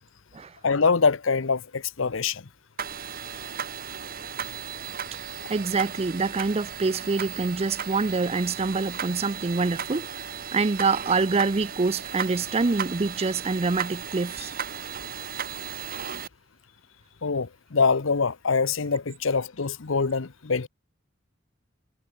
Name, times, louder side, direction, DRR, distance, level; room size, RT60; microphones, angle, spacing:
voice 1, 0.6-2.5 5.4-5.5 17.2-20.7, left 5 dB, 80° left, 0.9 m, -24 dB
sound 1, 2.8-16.3, right 7 dB, 50° right, 1.8 m, -36 dB
voice 2, 5.5-10.1 10.5-14.5, right 4 dB, 30° right, 0.5 m, -25 dB
head